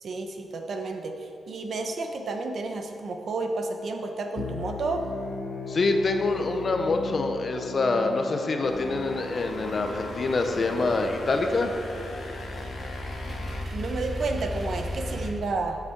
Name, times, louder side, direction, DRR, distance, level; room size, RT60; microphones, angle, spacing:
voice 1, 0.0-1.1 1.5-5.0 13.7-15.8, right 3 dB, 50° right, 4 dB, 0.9 m, -31 dB
sound 1, 4.4-13.6, left 3 dB, 70° left, 0.7 m, -37 dB
voice 2, 5.7-11.7, left 3 dB, 35° left, 5 dB, 0.7 m, -26 dB
sound 2, 8.6-15.3, equal, 30° right, 2.2 m, -36 dB
8.3 x 8.1 x 5.9 m, 2.7 s
wide cardioid pair, 180°, 0 cm